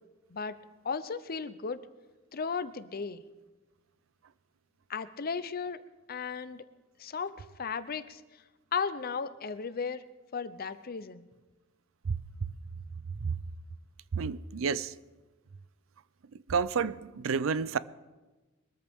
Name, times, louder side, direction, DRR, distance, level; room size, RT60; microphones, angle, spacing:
voice 1, 0.8-1.8 2.3-3.2 4.9-6.6 7.0-8.2 8.7-10.0 10.3-11.3, left 5 dB, 45° left, 0.7 m, -35 dB
voice 2, 14.1-14.9 16.5-17.8, right 5 dB, 70° right, 0.5 m, -30 dB
23.0 x 14.0 x 3.6 m
head